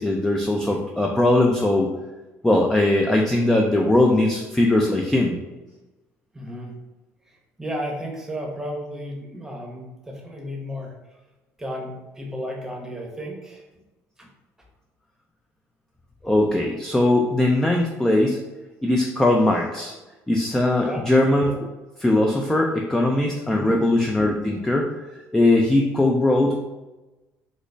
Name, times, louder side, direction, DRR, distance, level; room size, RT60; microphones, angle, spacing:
voice 1, 0.0-1.9 2.4-5.4 16.2-18.4 18.8-19.9 20.3-21.6 22.0-24.9 25.3-26.6, left 1 dB, 5° left, 0 dB, 0.3 m, -20 dB
voice 2, 6.3-6.7 7.3-10.9 11.6-13.6 14.2-14.3 20.8-21.1 23.5-23.8, equal, 10° right, 0 dB, 0.8 m, -33 dB
3.8 x 2.0 x 3.3 m, 1.1 s
cardioid pair, 105°, 6 cm